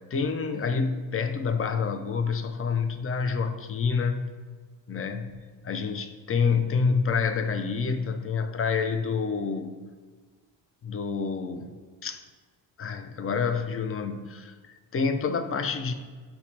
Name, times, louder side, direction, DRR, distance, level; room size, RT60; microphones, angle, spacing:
voice 1, 0.1-4.3 4.9-9.8 10.8-11.7 12.0-12.2 12.8-15.9, left 5 dB, 30° left, 8 dB, 0.5 m, -28 dB
5.7 x 2.1 x 4.2 m, 1.4 s
supercardioid pair, 55°, 45 cm